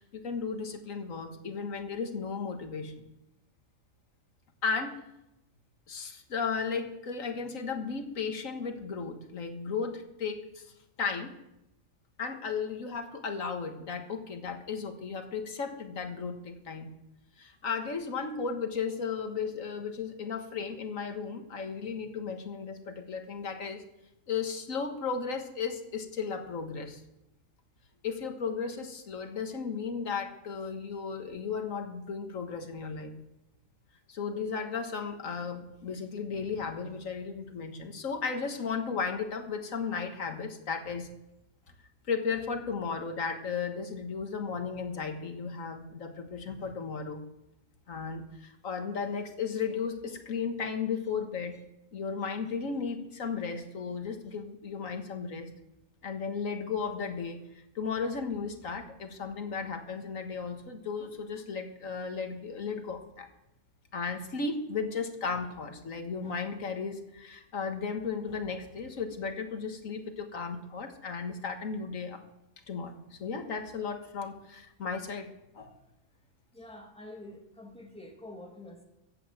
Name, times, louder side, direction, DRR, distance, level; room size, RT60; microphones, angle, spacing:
voice 1, 0.0-3.1 4.6-5.0 5.9-10.7 11.0-11.3 12.2-16.9 17.4-23.8 24.3-27.0 28.0-33.1 34.1-41.1 42.1-47.2 47.9-51.6 51.9-55.5 56.0-63.3 63.9-72.2 72.7-75.7, left 5 dB, 90° left, 6 dB, 1.9 m, -35 dB
voice 2, 76.5-78.8, left 1 dB, 5° left, 1 dB, 2.0 m, -47 dB
15.0 x 8.5 x 7.5 m, 0.89 s
omnidirectional pair, 1.3 m